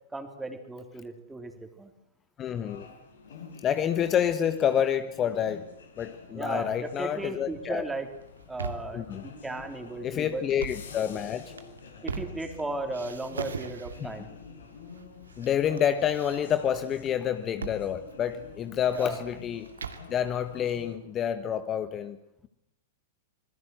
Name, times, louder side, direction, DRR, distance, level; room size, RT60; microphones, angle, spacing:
voice 1, 0.1-1.9 6.3-8.1 8.5-10.4 12.0-14.3 18.9-19.2, right 2 dB, 10° right, 5 dB, 3.7 m, -36 dB
voice 2, 2.4-2.9 3.6-5.6 6.0-7.8 8.9-9.2 10.0-11.4 14.0-14.1 15.4-19.7 20.1-22.2, left 9 dB, 25° left, 11 dB, 1.3 m, -28 dB
sound 1, 2.5-21.0, left 5 dB, 70° left, 5.0 m, -49 dB
sound 2, 8.2-9.0 10.4-10.9 11.4-12.6 12.9-14.2 14.9-15.5 15.8-16.8 17.6-17.8 18.1-18.2 18.6-20.1, right 5 dB, 75° right, 2.5 m, -39 dB
27.0 x 21.5 x 8.0 m, 0.77 s
figure-of-eight pair, 100°, 0 cm